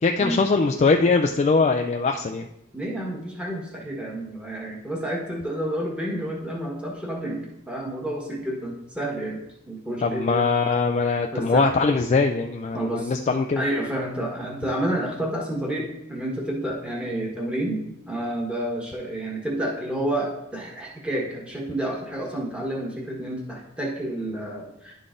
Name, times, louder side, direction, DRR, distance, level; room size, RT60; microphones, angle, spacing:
voice 1, 0.0-2.5 10.0-13.7, left 4 dB, 35° left, 5 dB, 0.3 m, -22 dB
voice 2, 2.7-9.4 9.7-10.4 11.0-11.7 12.7-13.1 13.6-17.8 18.1-24.9, right 1 dB, 5° right, -3 dB, 1.4 m, -30 dB
11.0 x 3.9 x 3.7 m, 0.84 s
head